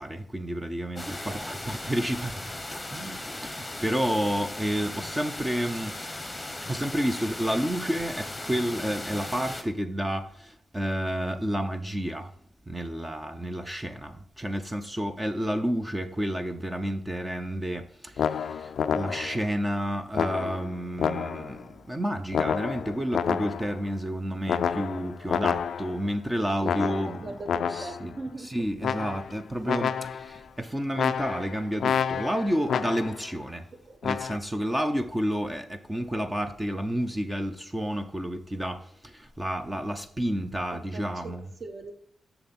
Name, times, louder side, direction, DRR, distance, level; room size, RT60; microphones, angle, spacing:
voice 1, 0.0-6.0 6.6-12.3 12.7-27.3 27.7-33.7 34.0-41.5, equal, 10° right, 0.6 m, -30 dB
voice 2, 0.9-1.6 4.1-4.2 26.6-28.5 33.8-34.0 40.7-41.9, right 2 dB, 35° right, 1.0 m, -41 dB
sound 1, 1.0-9.6, left 1 dB, 5° left, 1.1 m, -37 dB
sound 2, 18.2-19.5 20.1-21.6 22.3-23.8 24.5-26.1 26.6-28.1 28.8-29.4 29.7-30.4 31.0-33.3 34.0-34.4, left 7 dB, 70° left, 0.3 m, -29 dB
6.9 x 6.9 x 4.2 m
wide cardioid pair, 170°, 0 cm